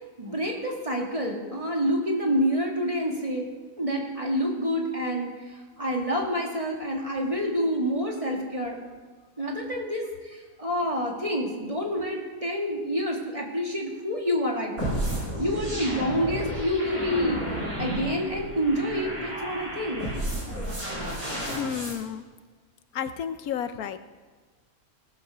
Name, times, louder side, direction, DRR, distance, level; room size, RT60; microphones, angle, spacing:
voice 1, 0.2-3.5 3.8-8.8 9.4-17.4 17.8-20.1, equal, 25° right, -1 dB, 2.2 m, -28 dB
sound 1, 14.8-22.0, right 1 dB, 80° right, 6.2 m, -32 dB
voice 2, 21.5-22.2 22.9-24.0, left 8 dB, 80° left, 11 dB, 1.2 m, -31 dB
17.0 x 7.3 x 6.8 m, 1.5 s
omnidirectional pair, 1.5 m